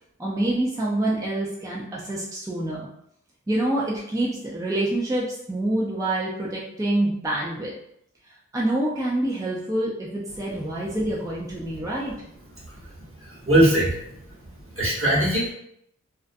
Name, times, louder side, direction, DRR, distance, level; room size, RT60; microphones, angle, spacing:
voice 1, 0.2-2.9 3.5-7.7 8.5-12.1, right 1 dB, 10° right, -5 dB, 0.4 m, -26 dB
voice 2, 13.2-14.0 14.7-15.5, right 1 dB, 45° right, -6 dB, 0.9 m, -20 dB
2.4 x 2.1 x 2.5 m, 0.75 s
wide cardioid pair, 55°, 31 cm